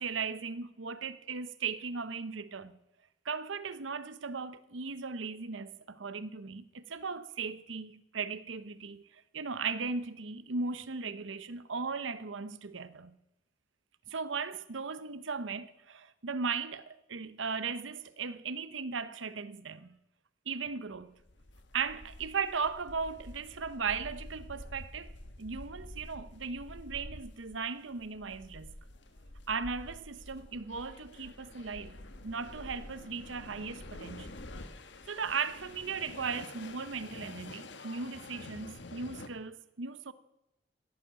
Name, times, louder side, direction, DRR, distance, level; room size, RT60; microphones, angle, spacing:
voice 1, 0.0-2.8 3.2-13.2 14.1-20.0 20.5-21.1 21.7-25.1 25.4-28.8 29.5-32.0 32.2-34.3 35.1-40.1, right 5 dB, 85° right, 0.9 m, -37 dB
sound 1, 21.2-39.3, left 2 dB, 70° left, 1.4 m, -48 dB
16.0 x 10.0 x 7.6 m
head